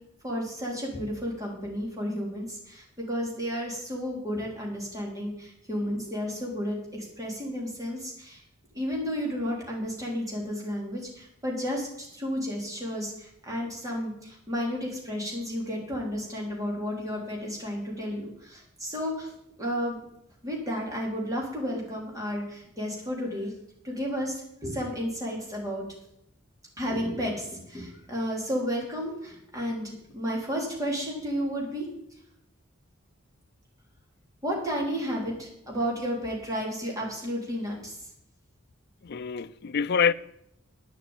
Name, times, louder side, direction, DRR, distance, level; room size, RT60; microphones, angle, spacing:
voice 1, 0.2-8.4 8.7-19.3 19.6-20.0 20.4-23.5 23.8-25.9 26.8-31.9 34.4-37.9, equal, 15° right, 3.7 m, -32 dB
voice 2, 39.0-40.1, left 6 dB, 50° left, 0.5 m, -26 dB
10.0 x 7.1 x 9.0 m
head